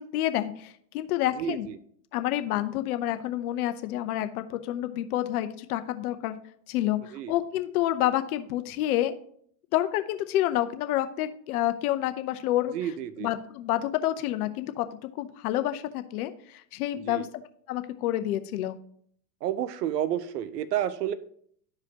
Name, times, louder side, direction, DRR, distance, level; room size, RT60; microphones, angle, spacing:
voice 1, 0.0-1.7 2.1-6.4 6.7-9.2 9.7-12.7 13.2-17.3 17.7-18.8, left 13 dB, 60° left, 10 dB, 0.8 m, -28 dB
voice 2, 1.4-1.8 7.1-7.3 12.7-13.3 17.1-17.3 19.4-21.1, right 10 dB, 70° right, 14 dB, 0.8 m, -30 dB
12.5 x 4.9 x 2.9 m, 0.63 s
hypercardioid pair, 110°, 49 cm